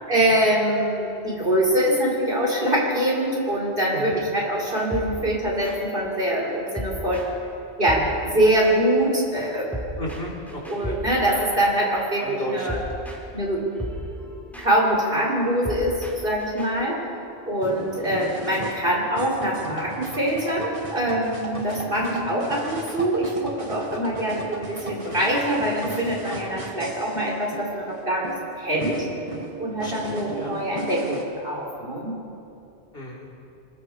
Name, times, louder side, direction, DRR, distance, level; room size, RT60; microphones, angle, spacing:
voice 1, 0.1-7.3 7.8-9.7 10.7-12.8 13.3-13.7 14.6-17.0 17.5-28.3 28.6-29.1 29.6-32.1, right 1 dB, 55° right, -3 dB, 4.8 m, -24 dB
sound 1, 4.7-7.6 7.8-19.5, equal, ahead, 4.1 m, -37 dB
voice 2, 10.0-11.0 11.3-11.4 12.2-12.7 21.5-21.6 29.8-30.8 32.9-33.2, equal, 60° left, -2 dB, 4.0 m, -34 dB
sound 2, 17.6-31.2, right 2 dB, 30° right, 2.1 m, -36 dB
27.0 x 20.0 x 4.9 m, 2.7 s
omnidirectional pair, 1.1 m